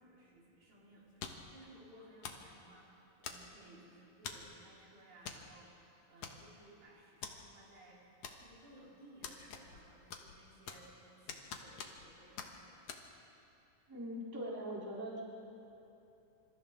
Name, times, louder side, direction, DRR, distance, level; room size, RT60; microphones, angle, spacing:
voice 1, 0.0-8.0 8.3-12.7, right 1 dB, 80° right, -6 dB, 6.4 m, -60 dB
sound 1, 1.2-1.5 2.2-2.5 3.2-3.7 4.2-4.5 5.2-5.4 5.7-5.8 6.2-6.7 7.2-7.3 8.2-8.7 9.2-9.8 10.1-10.9 11.3-12.1 12.4-12.5 12.9-13.0, left 6 dB, 60° left, 2.1 m, -46 dB
voice 2, 13.9-15.2, equal, 5° right, -6 dB, 3.5 m, -41 dB
27.5 x 27.0 x 3.8 m, 2.8 s
omnidirectional pair, 4.2 m